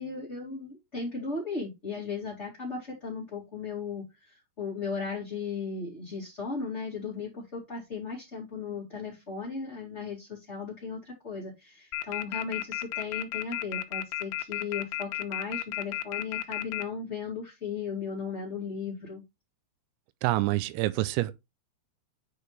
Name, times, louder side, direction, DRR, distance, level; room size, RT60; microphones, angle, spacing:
voice 1, 0.0-19.2, left 5 dB, 20° left, 2.1 m, -36 dB
sound 1, 11.9-16.8, left 14 dB, 85° left, 3.0 m, -32 dB
voice 2, 20.2-21.3, right 18 dB, 90° right, 3.3 m, -27 dB
9.7 x 4.8 x 3.3 m
omnidirectional pair, 5.9 m